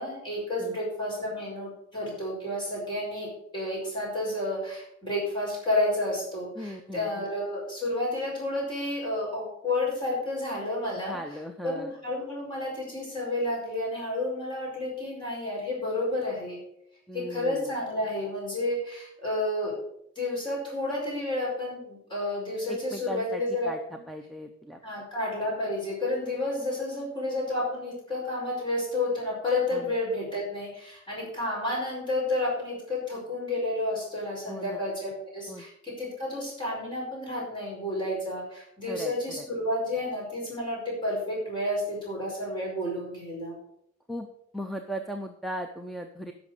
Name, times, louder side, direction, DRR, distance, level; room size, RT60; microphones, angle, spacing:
voice 1, 0.0-11.4 11.6-16.6 17.1-19.7 20.2-24.0 24.8-43.6, left 1 dB, 20° left, -4 dB, 5.2 m, -31 dB
voice 2, 6.6-7.3 11.1-11.9 17.1-17.7 22.7-23.8 24.1-24.8 29.7-29.9 34.5-34.8 35.5-35.7 38.9-39.1 44.1-44.3 44.5-46.3, equal, ahead, 5 dB, 0.5 m, -37 dB
11.0 x 6.2 x 6.6 m, 0.75 s
head